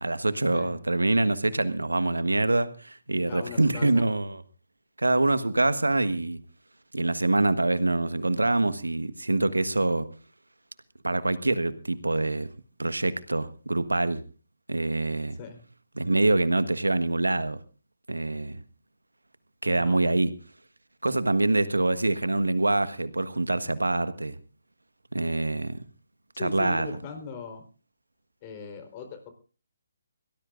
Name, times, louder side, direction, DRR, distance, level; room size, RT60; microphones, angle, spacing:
voice 1, 0.0-4.4 5.0-6.4 6.9-10.1 11.0-12.5 12.8-14.2 14.7-15.4 15.9-17.6 18.1-18.6 19.6-20.3 21.0-24.4 25.1-25.8 26.4-27.0, right 2 dB, 90° right, 13 dB, 1.4 m, -25 dB
voice 2, 3.3-4.0 15.4-15.6 19.7-20.0 26.4-27.6 28.4-29.3, left 5 dB, 30° left, 7 dB, 4.1 m, -39 dB
23.0 x 18.0 x 2.6 m, 0.37 s
figure-of-eight pair, 145°, 0 cm